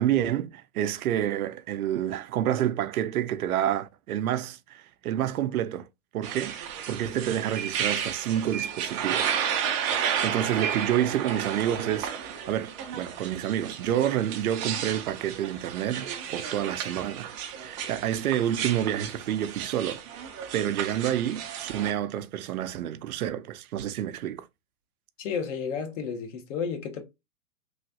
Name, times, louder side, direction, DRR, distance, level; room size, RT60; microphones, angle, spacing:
voice 1, 0.0-5.9 6.1-9.3 9.9-17.3 17.6-20.0 20.5-24.5, right 11 dB, 80° right, 0.5 m, -29 dB
sound 1, 6.2-21.9, right 8 dB, 25° right, 0.3 m, -33 dB
voice 2, 25.2-27.0, left 6 dB, 55° left, 1.1 m, -32 dB
3.1 x 2.4 x 2.6 m
hypercardioid pair, 115°, 43 cm